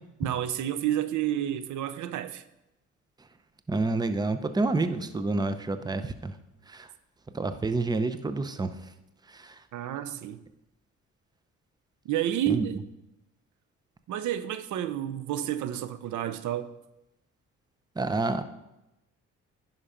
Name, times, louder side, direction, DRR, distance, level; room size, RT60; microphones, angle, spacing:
voice 1, 0.2-2.4 9.7-10.4 12.0-12.8 14.1-16.7, right 11 dB, 75° right, 0.6 m, -30 dB
voice 2, 3.7-6.3 6.7-6.9 7.3-8.7 9.3-9.6 12.5-12.7 18.0-18.4, right 3 dB, 15° right, 0.6 m, -28 dB
10.5 x 5.6 x 5.0 m
cardioid pair, 90°, 30 cm